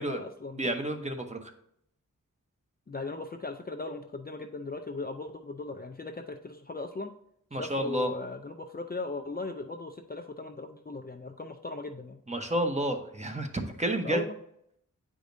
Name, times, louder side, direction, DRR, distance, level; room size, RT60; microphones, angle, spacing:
voice 1, 0.0-0.7 2.9-7.1 7.6-12.2 14.0-14.3, left 3 dB, 30° left, 5 dB, 0.5 m, -38 dB
voice 2, 0.6-1.5 7.5-8.1 12.3-14.2, right 1 dB, 20° right, 4 dB, 0.9 m, -30 dB
9.1 x 4.9 x 2.6 m, 0.72 s
wide cardioid pair, 80°, 33 cm